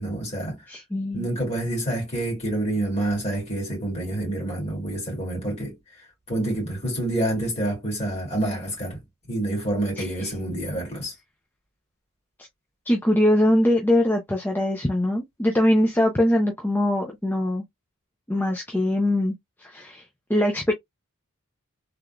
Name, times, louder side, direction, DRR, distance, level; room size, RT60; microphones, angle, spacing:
voice 1, 0.0-0.6 1.1-5.8 6.3-9.0 9.3-11.1, right 1 dB, 30° left, 2.4 m, -27 dB
voice 2, 0.7-1.3 10.0-10.1 12.9-17.6 18.3-20.0 20.3-20.7, left 1 dB, 10° left, 0.5 m, -22 dB
3.6 x 3.0 x 2.2 m
head